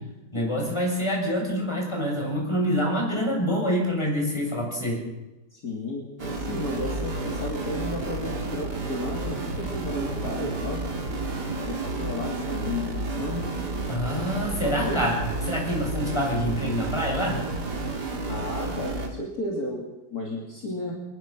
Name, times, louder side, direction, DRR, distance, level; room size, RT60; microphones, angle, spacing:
voice 1, 0.3-5.0 13.9-15.2 15.5-17.4, equal, 15° left, -2 dB, 7.5 m, -26 dB
voice 2, 5.5-10.9 11.6-13.5 14.6-15.1 18.3-19.8 20.1-20.9, left 2 dB, 50° left, -2 dB, 3.2 m, -33 dB
sound 1, 6.2-19.1, right 2 dB, 55° right, 3.3 m, -31 dB
23.5 x 20.5 x 6.1 m, 1.1 s
omnidirectional pair, 2.2 m